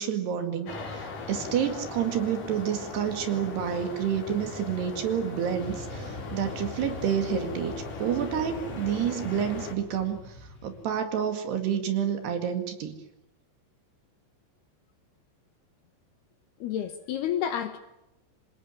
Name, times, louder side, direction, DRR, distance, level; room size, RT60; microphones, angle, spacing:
voice 1, 0.0-7.7 8.0-10.2 10.6-13.0, right 8 dB, 60° right, 8 dB, 3.9 m, -29 dB
sound 1, 0.7-9.7, left 4 dB, 45° left, 4.8 m, -39 dB
Motorcycle / Traffic noise roadway noise, 5.6-10.8, left 1 dB, 15° left, 3.1 m, -43 dB
voice 2, 16.6-17.8, left 10 dB, 70° left, 9 dB, 2.8 m, -30 dB
27.0 x 18.5 x 9.2 m, 0.90 s
omnidirectional pair, 5.8 m